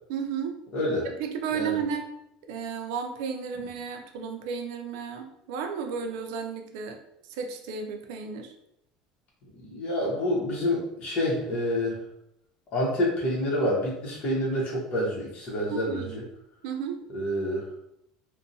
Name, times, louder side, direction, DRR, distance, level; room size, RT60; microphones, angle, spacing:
voice 1, 0.1-0.6 1.0-2.1 2.5-7.0 7.3-8.5 15.7-16.2 16.6-17.0, right 6 dB, 75° right, 4 dB, 0.4 m, -33 dB
voice 2, 0.7-1.1 1.5-1.8 9.6-12.0 12.7-16.2 17.1-17.7, left 1 dB, 45° left, -4 dB, 1.0 m, -28 dB
2.6 x 2.2 x 2.6 m, 0.78 s
supercardioid pair, 110°, 2 cm